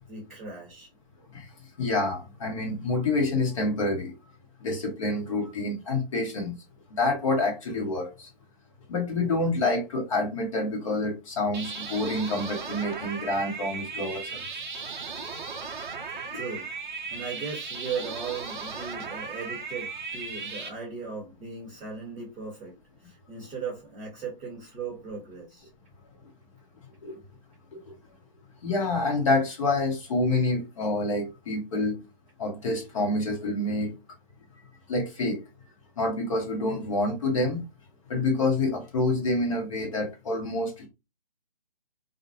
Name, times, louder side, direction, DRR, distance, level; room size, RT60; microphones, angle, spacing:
voice 1, 0.1-0.9 16.3-16.7 17.1-22.8 23.0-25.7, right 5 dB, ahead, 0.4 m, -37 dB
voice 2, 1.8-4.1 4.6-6.5 6.9-8.3 8.9-14.4 16.3-16.4 27.0-27.2 27.7-27.8 28.6-32.0 32.4-33.9 34.9-35.4 36.0-37.6 38.1-40.9, left 2 dB, 35° left, 0.8 m, -27 dB
sound 1, 11.5-20.7, right 5 dB, 55° right, 0.5 m, -36 dB
2.4 x 2.0 x 2.6 m
figure-of-eight pair, 145°, 29 cm